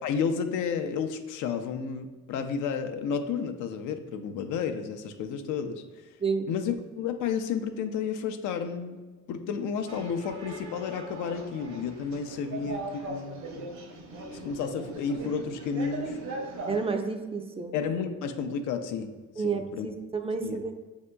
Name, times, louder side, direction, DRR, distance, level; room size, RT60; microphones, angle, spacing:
voice 1, 0.0-5.8 6.5-9.0 9.3-13.7 14.4-16.2 17.7-19.1 19.4-19.9 20.4-20.6, left 6 dB, 85° left, 7 dB, 0.5 m, -31 dB
sound 1, 9.9-16.9, right 2 dB, 70° right, 0.8 m, -39 dB
voice 2, 16.7-17.7 19.4-20.7, right 5 dB, 20° right, 5 dB, 0.3 m, -30 dB
6.6 x 2.7 x 2.2 m, 1.3 s
cardioid pair, 90°, 30 cm